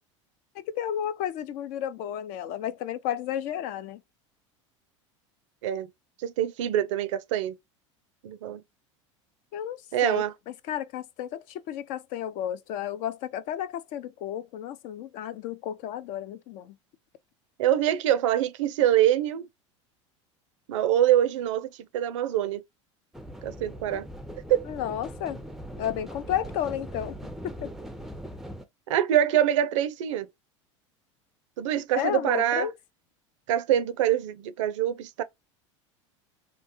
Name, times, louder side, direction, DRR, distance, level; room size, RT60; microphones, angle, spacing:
voice 1, 0.5-4.0 9.5-10.2 10.7-16.8 24.6-25.4 25.8-27.2 27.4-27.7 32.0-32.7, left 10 dB, 55° left, 0.5 m, -32 dB
voice 2, 6.2-7.6 8.2-8.6 9.9-10.3 17.6-19.5 20.7-22.6 23.4-24.1 24.5-24.6 28.9-30.3 31.6-32.7 33.5-35.2, right 11 dB, 75° right, 0.4 m, -25 dB
sound 1, 23.1-28.6, equal, ahead, 0.4 m, -40 dB
2.8 x 2.1 x 2.5 m
hypercardioid pair, 85°, 16 cm